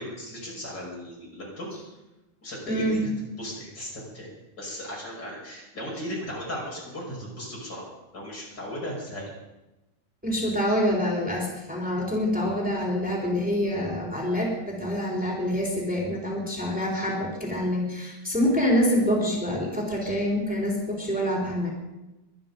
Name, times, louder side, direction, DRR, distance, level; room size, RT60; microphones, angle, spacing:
voice 1, 0.0-1.7 2.4-3.1 3.4-4.3 4.6-7.8 8.1-9.2, equal, 60° left, -3 dB, 6.3 m, -36 dB
voice 2, 2.7-3.0 10.2-21.7, equal, 5° right, -2 dB, 3.9 m, -26 dB
23.0 x 9.9 x 5.4 m, 1.0 s
omnidirectional pair, 2.1 m